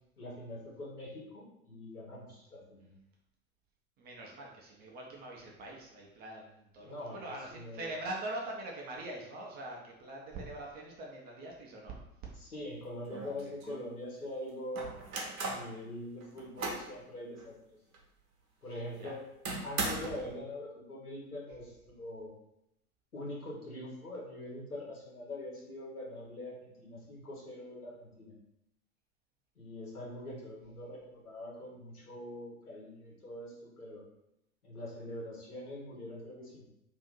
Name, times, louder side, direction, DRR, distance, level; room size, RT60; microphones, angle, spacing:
voice 1, 0.2-2.9 6.8-7.9 12.4-15.0 15.4-17.5 18.6-19.2 19.6-22.3 23.1-28.3 29.6-34.0 34.6-36.7, left 1 dB, 85° left, -4 dB, 1.2 m, -43 dB
voice 2, 4.0-12.0 18.7-19.1, right 2 dB, 20° right, -1 dB, 0.5 m, -43 dB
sound 1, 12.6-12.7 13.1-13.8 14.8-15.7 16.2-16.9 17.4-17.5 17.9-18.0 19.5-20.3, right 3 dB, 70° right, 0.8 m, -37 dB
2.7 x 2.5 x 3.7 m, 0.83 s
figure-of-eight pair, 85°, 44 cm